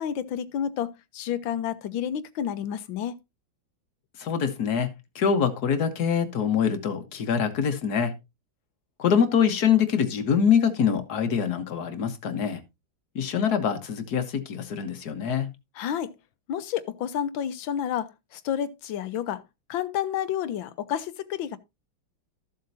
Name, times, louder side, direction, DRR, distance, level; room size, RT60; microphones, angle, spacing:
voice 1, 0.0-3.1 15.8-16.1 16.5-19.4 19.7-21.6, left 9 dB, 80° left, 1.6 m, -30 dB
voice 2, 4.2-4.9 5.1-8.1 9.0-12.6 13.1-15.5, left 7 dB, 55° left, 1.7 m, -24 dB
14.0 x 7.6 x 2.7 m
omnidirectional pair, 2.2 m